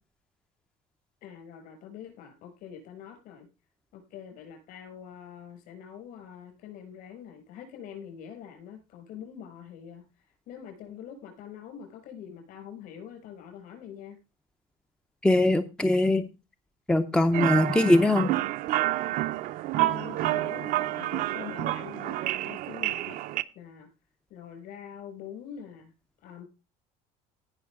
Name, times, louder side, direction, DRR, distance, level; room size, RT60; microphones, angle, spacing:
voice 1, 1.2-3.5 3.9-10.0 10.5-14.2 17.2-17.9 19.7-23.2 23.5-23.9 24.3-25.9 26.2-26.4, left 8 dB, 60° left, 4 dB, 6.7 m, -44 dB
voice 2, 15.2-16.2 16.9-18.3, left 1 dB, 5° left, 8 dB, 0.6 m, -22 dB
sound 1, 17.3-23.4, right 15 dB, 60° right, 0.6 m, -29 dB
18.0 x 6.1 x 3.6 m, 0.29 s
cardioid pair, 155°, 16 cm